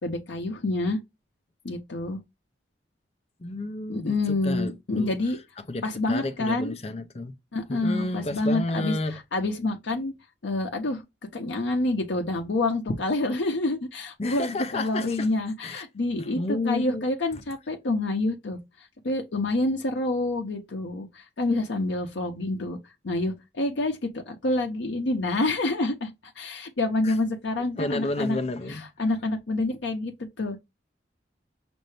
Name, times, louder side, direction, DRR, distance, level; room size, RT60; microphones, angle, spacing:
voice 1, 0.0-1.0 1.6-2.2 3.9-5.4 5.8-6.7 7.5-8.9 9.3-10.1 10.4-11.0 11.3-16.4 16.6-22.8 23.0-28.4 29.0-30.6, left 2 dB, 80° left, 0.7 m, -27 dB
voice 2, 3.4-5.1 5.6-7.3 7.7-9.2 14.2-15.3 15.6-15.8 16.2-17.1 17.3-17.4 27.0-27.2 27.8-28.8, left 2 dB, 35° left, 0.5 m, -31 dB
5.5 x 2.6 x 3.2 m
head